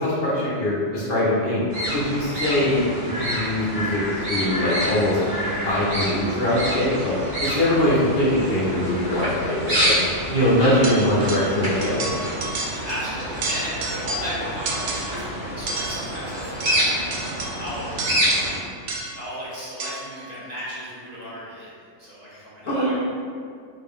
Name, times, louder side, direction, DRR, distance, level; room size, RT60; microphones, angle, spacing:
voice 1, 0.0-1.6 1.9-4.0 4.3-5.2 5.6-7.1 7.4-9.9 10.3-12.1 22.7-22.9, left 1 dB, 55° left, -8 dB, 1.0 m, -22 dB
sound 1, 1.7-18.6, equal, 80° right, 2.0 m, -28 dB
sound 2, 10.8-11.6 11.8-13.1 13.3-14.3 14.7-15.3 15.7-19.3 19.8-20.2, right 3 dB, 65° right, 0.7 m, -31 dB
voice 2, 12.7-17.0 17.6-18.0 18.9-21.7 22.0-22.9, equal, 35° right, -10 dB, 0.9 m, -35 dB
3.8 x 2.3 x 3.6 m, 2.2 s
omnidirectional pair, 1.3 m